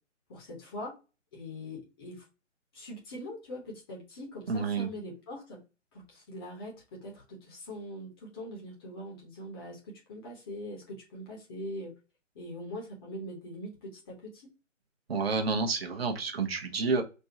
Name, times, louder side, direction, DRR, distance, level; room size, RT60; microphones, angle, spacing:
voice 1, 0.3-0.9 1.3-2.2 2.7-5.6 5.9-11.9 12.3-14.5, left 1 dB, 20° left, -1 dB, 0.8 m, -42 dB
voice 2, 4.5-4.9 15.1-17.0, right 4 dB, 50° right, 4 dB, 0.8 m, -29 dB
4.3 x 2.2 x 2.7 m, 0.31 s
figure-of-eight pair, 140°, 38 cm